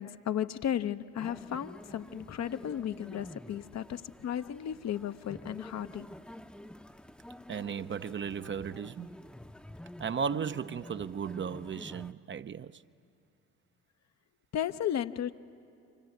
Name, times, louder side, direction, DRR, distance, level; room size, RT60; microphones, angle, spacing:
voice 1, 0.0-6.1 14.5-15.3, left 10 dB, 50° left, 0.8 m, -34 dB
sound 1, 1.2-12.1, left 1 dB, 5° left, 0.7 m, -49 dB
voice 2, 7.5-9.2 10.0-12.8, right 7 dB, 30° right, 0.6 m, -35 dB
30.0 x 25.0 x 7.9 m
hypercardioid pair, 55°, 36 cm